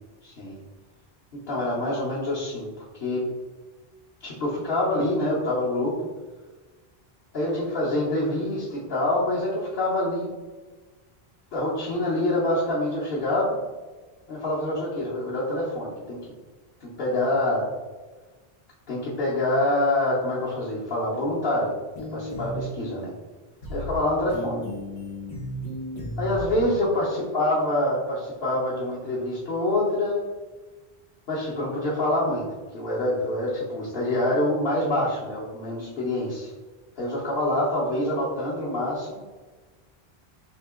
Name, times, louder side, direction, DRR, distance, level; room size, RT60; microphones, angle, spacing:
voice 1, 0.2-0.6 1.3-3.2 4.2-5.9 7.3-10.3 11.5-13.6 14.3-16.2 16.8-17.7 18.9-21.7 22.1-23.1 23.7-24.6 26.2-30.2 31.3-32.4 32.7-36.5 37.0-39.2, left 1 dB, 65° left, -9 dB, 1.2 m, -26 dB
sound 1, 21.9-22.6 23.6-24.0 24.3-26.6, left 1 dB, 90° left, 1.3 m, -34 dB
3.6 x 2.9 x 3.6 m, 1.3 s
omnidirectional pair, 1.1 m